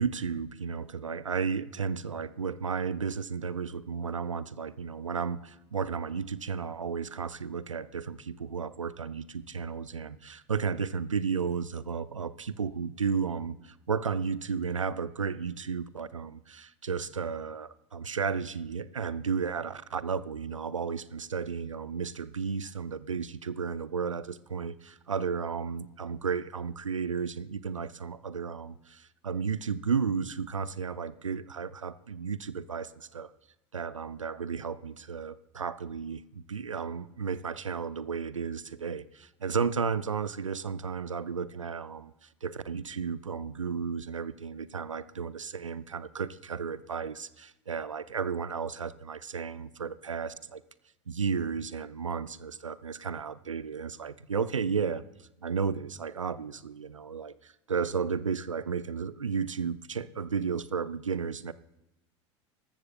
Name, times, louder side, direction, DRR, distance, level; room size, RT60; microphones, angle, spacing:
voice 1, 0.0-33.3 33.7-50.6 51.1-55.0 55.4-61.5, right 6 dB, 85° right, 17 dB, 0.5 m, -33 dB
19.5 x 14.0 x 2.2 m, 0.94 s
figure-of-eight pair, 75°, 16 cm